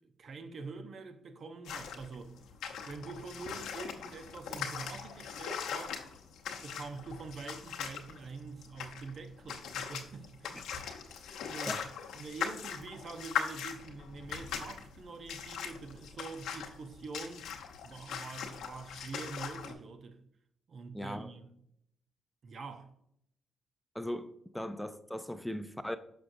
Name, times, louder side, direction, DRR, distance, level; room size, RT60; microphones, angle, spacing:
voice 1, 0.2-2.3 2.8-6.0 6.6-10.7 11.1-11.8 12.1-17.5 17.8-20.2 20.7-21.5 22.4-22.9, right 4 dB, 55° right, 0.7 m, -45 dB
sound 1, 1.6-19.7, left 7 dB, 85° left, 0.8 m, -41 dB
voice 2, 20.9-21.3 23.9-26.0, left 1 dB, 5° left, 0.4 m, -38 dB
6.2 x 6.0 x 2.6 m
cardioid pair, 75°, 0 cm